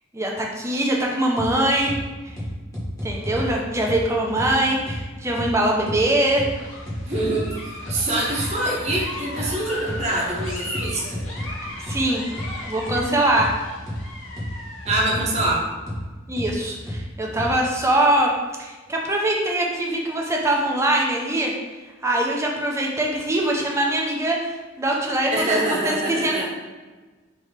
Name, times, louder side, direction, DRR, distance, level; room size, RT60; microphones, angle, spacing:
voice 1, 0.1-2.0 2.2-2.4 3.0-6.5 8.1-8.3 11.8-12.3 12.7-13.5 16.3-18.3 18.6-21.5 22.0-26.5, right 1 dB, 15° right, -1 dB, 0.7 m, -22 dB
sound 1, 1.4-1.5 1.9-2.0 2.4-3.5 3.9-4.0 4.4-4.5 4.9-5.0 5.4-5.5 5.9-6.0 6.4-6.5 6.9-7.5 7.9-8.0 8.4-8.5 8.9-9.0 9.4-9.5 9.9-10.0 10.4-11.5 11.9-12.0 12.4-12.5 12.9-13.0 13.4-13.5 13.9-14.0 14.4-14.5 14.9-15.5 15.9-16.0 16.4-16.5 16.9-17.0 17.4-17.5, left 1 dB, 15° left, 1.1 m, -30 dB
sound 2, 6.4-15.0, left 2 dB, 80° left, 1.0 m, -37 dB
voice 2, 7.0-11.2 14.8-15.6 25.3-26.5, right 1 dB, 35° right, -3 dB, 1.0 m, -25 dB
3.7 x 3.0 x 4.8 m, 1.3 s
head